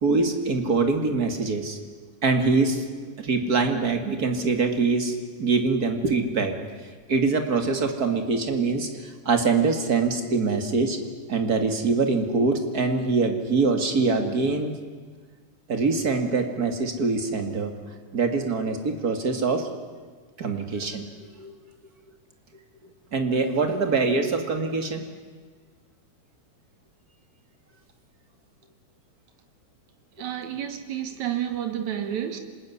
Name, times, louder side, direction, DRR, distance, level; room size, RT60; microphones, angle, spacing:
voice 1, 0.0-1.8 2.2-2.8 3.2-6.6 7.1-11.0 11.3-14.7 15.7-17.7 18.1-19.7 20.4-21.1 21.4-21.5 23.1-25.1, right 4 dB, 30° right, 2.4 m, -24 dB
voice 2, 30.2-32.4, right 10 dB, 65° right, 3.3 m, -30 dB
26.5 x 20.5 x 9.8 m
omnidirectional pair, 3.6 m